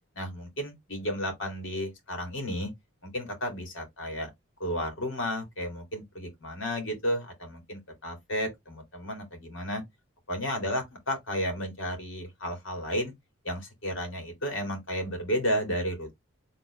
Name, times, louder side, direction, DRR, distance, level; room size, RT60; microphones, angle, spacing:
voice 1, 0.2-2.7 3.0-4.3 4.6-9.8 10.3-13.1 13.4-16.1, equal, 60° left, 2.3 m, -32 dB
4.6 x 3.6 x 3.0 m
head